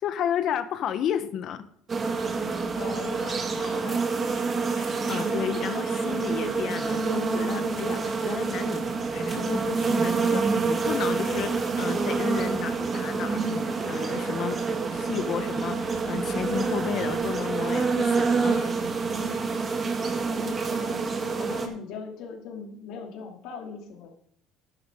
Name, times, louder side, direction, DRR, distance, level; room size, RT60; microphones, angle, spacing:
voice 1, 0.0-1.7 4.7-14.6 14.9-18.8, left 9 dB, 55° left, 12 dB, 1.0 m, -33 dB
sound 1, 1.9-21.7, right 4 dB, 30° right, 1.9 m, -27 dB
voice 2, 2.8-4.0 20.2-21.0 21.4-24.1, left 5 dB, 70° left, 3 dB, 2.5 m, -40 dB
12.5 x 10.5 x 3.7 m, 0.65 s
cardioid pair, 115°, 0 cm